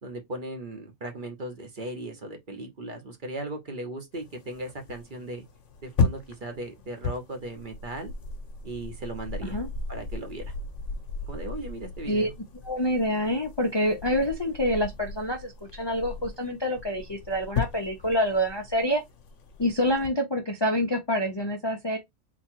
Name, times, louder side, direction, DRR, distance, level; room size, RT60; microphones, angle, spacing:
voice 1, 0.0-5.4 5.8-8.1 8.6-9.6 9.9-10.5 11.3-12.3, right 1 dB, 45° right, 1.0 m, -37 dB
sound 1, 4.1-20.1, left 4 dB, 65° left, 1.2 m, -35 dB
voice 2, 12.6-19.0 19.6-22.0, equal, 30° left, 0.5 m, -27 dB
4.0 x 2.3 x 4.5 m
omnidirectional pair, 1.4 m